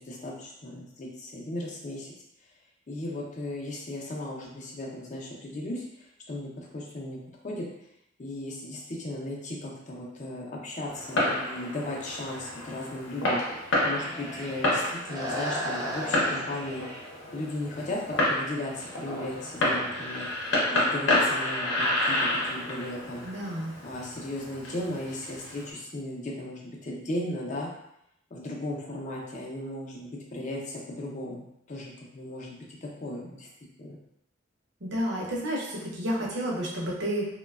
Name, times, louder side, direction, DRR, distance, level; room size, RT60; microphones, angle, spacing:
voice 1, 0.0-2.1 2.9-5.8 6.3-7.2 7.4-7.7 8.2-16.9 17.3-20.3 20.7-22.2 22.4-23.3 23.8-27.7 28.3-33.5 33.8-34.0, left 1 dB, 40° left, -2 dB, 0.5 m, -36 dB
Fireworks, 10.9-25.7, left 1 dB, 75° left, 0.7 m, -30 dB
sound 1, 13.5-14.7 15.0-17.1 17.6-17.8 18.1-18.3 18.6-20.5, equal, 20° right, 0.6 m, -37 dB
voice 2, 23.2-23.7 34.8-37.3, equal, 65° right, -4 dB, 0.7 m, -30 dB
3.0 x 2.2 x 2.3 m, 0.78 s
head